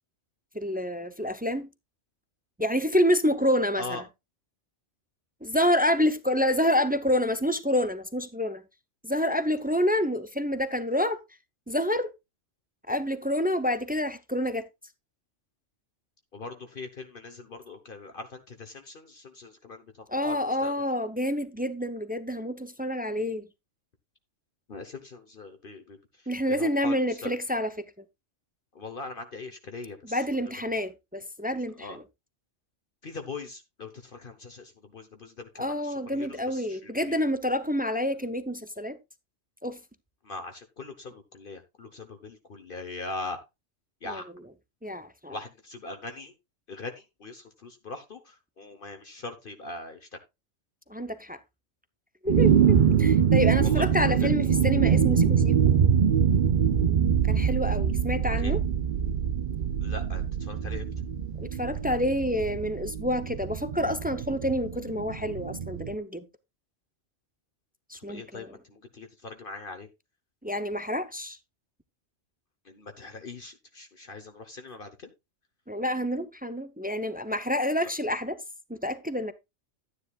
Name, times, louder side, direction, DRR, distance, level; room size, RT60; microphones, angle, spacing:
voice 1, 0.5-1.7 2.6-4.0 5.4-8.6 9.0-11.2 11.7-12.1 12.9-14.6 20.1-23.5 26.3-27.8 30.0-32.0 35.6-39.0 39.6-39.8 44.0-44.2 44.8-45.4 50.9-51.4 52.2-55.6 57.3-58.6 61.4-66.2 67.9-68.6 70.4-71.4 75.7-78.4 78.7-79.3, equal, 10° right, 0.5 m, -28 dB
voice 2, 6.5-6.9 16.3-20.7 24.7-26.0 26.5-27.3 28.7-30.2 31.8-32.0 33.0-37.2 40.2-43.4 44.0-44.3 45.3-46.3 46.7-50.1 53.6-54.1 58.4-58.5 59.8-60.9 68.1-69.9 72.6-75.1, left 3 dB, 50° left, 1.2 m, -41 dB
sound 1, 52.3-65.9, right 7 dB, 50° right, 0.7 m, -24 dB
12.0 x 9.8 x 2.4 m
omnidirectional pair, 1.2 m